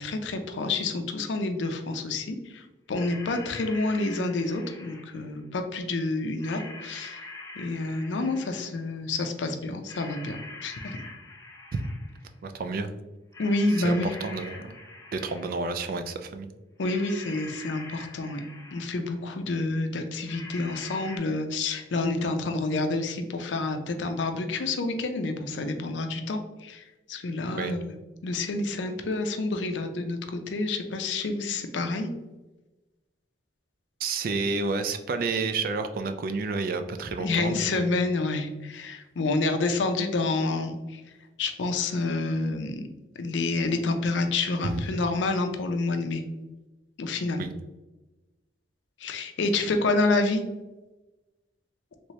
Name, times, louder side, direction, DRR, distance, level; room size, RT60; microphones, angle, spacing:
voice 1, 0.0-7.2 7.6-10.4 10.6-11.0 13.4-14.1 16.8-18.4 18.7-28.0 28.2-32.1 37.2-41.0 41.4-42.8 43.2-46.2 47.0-47.4 49.0-50.4, left 3 dB, 75° left, 6 dB, 0.5 m, -28 dB
sound 1, 1.9-2.0 2.9-5.4 6.4-8.8 9.9-12.3 13.3-15.8 16.8-19.2 20.3-21.2, left 2 dB, 15° left, 0.5 m, -44 dB
voice 2, 12.4-12.9 13.8-14.8 15.1-16.5 27.6-27.7 34.0-37.9 44.6-45.0 47.4-47.5, right 4 dB, 50° right, 8 dB, 0.3 m, -30 dB
3.2 x 3.1 x 2.7 m, 1.1 s
head